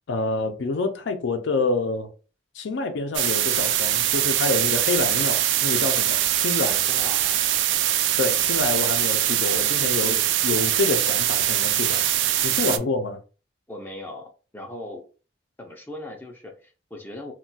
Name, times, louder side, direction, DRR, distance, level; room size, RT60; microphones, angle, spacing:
voice 1, 0.1-2.1 2.5-6.2 6.4-6.8 8.2-10.2 10.4-12.1 12.4-13.2, left 3 dB, 80° left, 0.4 m, -27 dB
sound 1, 3.1-12.8, right 12 dB, 75° right, 0.3 m, -22 dB
voice 2, 6.9-7.4 10.0-10.3 12.6-12.9 13.7-15.1 15.6-17.3, left 1 dB, 10° left, 0.4 m, -39 dB
2.3 x 2.2 x 3.9 m
head